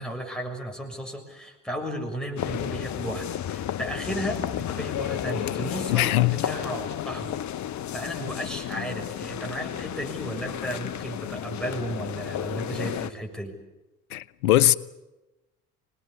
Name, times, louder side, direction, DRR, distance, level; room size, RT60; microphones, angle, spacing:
voice 1, 0.0-7.4 7.9-13.6, equal, ahead, 6.8 m, -34 dB
sound 1, 2.4-13.1, left 11 dB, 40° left, 1.0 m, -32 dB
voice 2, 5.9-6.4 14.1-14.7, left 15 dB, 75° left, 0.9 m, -20 dB
25.5 x 20.0 x 8.4 m
figure-of-eight pair, 60°, 44 cm